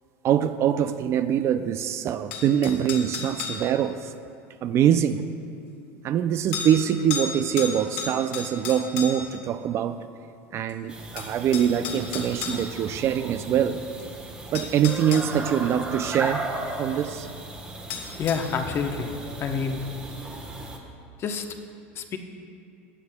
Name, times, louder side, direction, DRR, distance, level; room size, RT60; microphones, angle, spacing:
voice 1, 0.2-4.1 4.6-5.3 6.0-10.0 10.5-13.8 14.5-16.5 16.8-17.3, right 9 dB, 45° right, 11 dB, 0.4 m, -24 dB
sound 1, 2.3-3.6 5.1-5.2 6.5-6.7 7.1-7.3 7.6-9.3 10.7-10.8 11.2-12.6 14.0-14.1 14.6-15.3 17.9-18.4, left 6 dB, 75° left, 1.6 m, -33 dB
sound 2, 10.9-20.8, right 2 dB, 15° right, 1.2 m, -36 dB
voice 2, 18.2-19.1 19.4-19.8 21.2-21.5 21.9-22.2, left 6 dB, 40° left, 6 dB, 0.8 m, -28 dB
16.5 x 9.3 x 2.2 m, 2.5 s
supercardioid pair, 105°, 7 cm